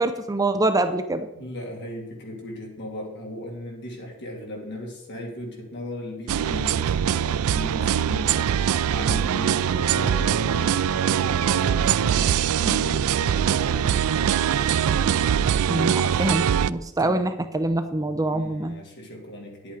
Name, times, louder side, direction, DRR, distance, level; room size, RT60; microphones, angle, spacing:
voice 1, 0.0-1.3 15.7-18.7, right 2 dB, 15° right, 8 dB, 0.5 m, -25 dB
voice 2, 1.3-14.5 17.0-17.2 18.3-19.7, left 1 dB, 55° left, -1 dB, 2.9 m, -37 dB
sound 1, 6.3-16.7, right 8 dB, 70° right, 0.4 m, -22 dB
10.5 x 8.3 x 4.9 m, 0.89 s
head